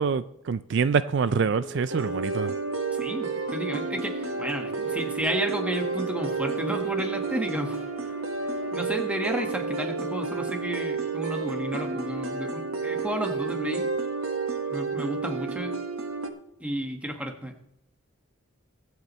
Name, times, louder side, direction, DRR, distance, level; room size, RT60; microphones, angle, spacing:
voice 1, 0.0-2.5, right 5 dB, 55° right, 14 dB, 0.4 m, -25 dB
sound 1, 1.1-8.8, left 1 dB, 35° left, 3.8 m, -45 dB
sound 2, 1.9-16.3, right 4 dB, 80° right, 1.4 m, -31 dB
voice 2, 3.0-7.9 8.7-13.9 14.7-15.8 16.6-17.5, right 1 dB, 5° right, 3 dB, 1.4 m, -32 dB
24.0 x 8.2 x 3.1 m, 0.79 s
head